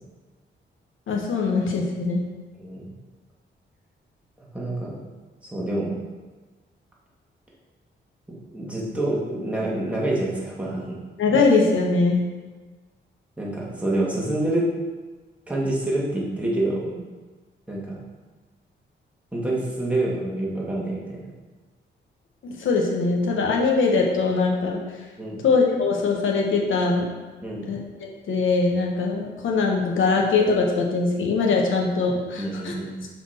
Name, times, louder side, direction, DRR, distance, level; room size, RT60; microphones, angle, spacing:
voice 1, 1.1-2.2 11.2-12.2 22.4-24.8 25.4-27.1 27.7-27.8 28.3-32.7, left 4 dB, 80° left, 0 dB, 1.1 m, -22 dB
voice 2, 2.6-2.9 4.4-5.0 5.4-5.9 8.5-11.0 13.4-14.7 15.5-17.0 17.7-18.0 19.3-21.2 25.2-25.4 27.4-27.7 32.4-33.0, right 1 dB, 5° right, -5 dB, 1.7 m, -27 dB
5.7 x 4.2 x 4.4 m, 1.3 s
cardioid pair, 100°, 20 cm